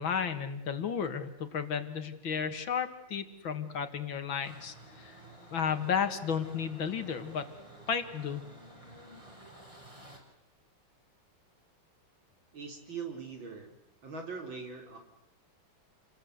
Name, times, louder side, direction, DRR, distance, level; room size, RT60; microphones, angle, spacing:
voice 1, 0.0-5.2 5.5-7.5 7.9-8.4, left 7 dB, 70° left, 9 dB, 2.6 m, -33 dB
sound 1, 4.4-10.2, right 1 dB, 15° right, 6.2 m, -52 dB
voice 2, 12.5-13.7 14.0-15.0, right 5 dB, 65° right, 3 dB, 4.9 m, -41 dB
29.0 x 21.5 x 8.1 m, 0.85 s
omnidirectional pair, 2.3 m